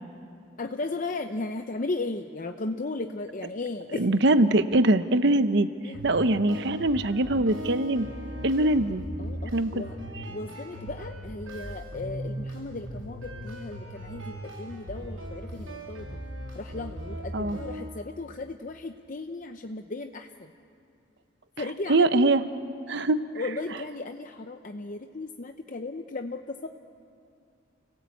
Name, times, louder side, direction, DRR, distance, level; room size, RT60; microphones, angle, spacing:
voice 1, 0.6-4.1 5.8-6.0 9.2-10.0 10.3-16.1 16.5-20.5 21.6-22.3 23.3-26.7, left 2 dB, 40° left, 6 dB, 0.7 m, -35 dB
voice 2, 4.0-5.7 6.0-8.1 8.4-9.0 9.5-9.8 17.3-17.6 21.9-22.4 22.9-23.2, right 2 dB, 60° right, 11 dB, 0.9 m, -22 dB
sound 1, 5.9-17.9, equal, 85° right, 7.2 m, -39 dB
29.5 x 17.5 x 8.4 m, 2.5 s
head